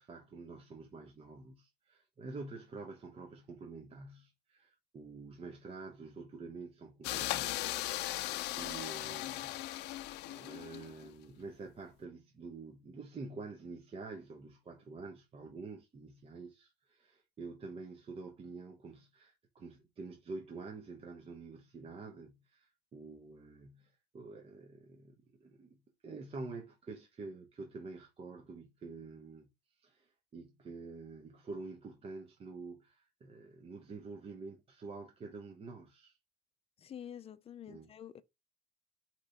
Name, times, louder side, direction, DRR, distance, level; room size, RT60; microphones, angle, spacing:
voice 1, 0.0-7.7 8.6-9.6 10.2-25.8 26.0-29.5 29.8-36.2 37.7-37.9, right 3 dB, 35° right, 0.8 m, -48 dB
sound 1, 7.0-11.1, left 16 dB, 90° left, 0.4 m, -38 dB
voice 2, 36.8-38.2, left 9 dB, 35° left, 0.5 m, -48 dB
4.5 x 3.0 x 3.9 m
cardioid pair, 110°, 17 cm